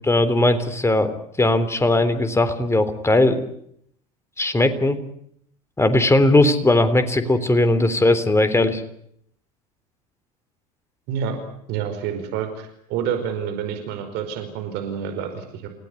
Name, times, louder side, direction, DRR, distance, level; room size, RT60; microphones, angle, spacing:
voice 1, 0.1-1.1 1.4-3.4 4.4-5.0 5.8-8.8, left 2 dB, 15° left, 11 dB, 3.5 m, -18 dB
voice 2, 11.1-11.4 11.7-15.7, right 8 dB, 60° right, 7 dB, 5.1 m, -28 dB
29.5 x 17.0 x 9.9 m, 0.73 s
hypercardioid pair, 75°, 20 cm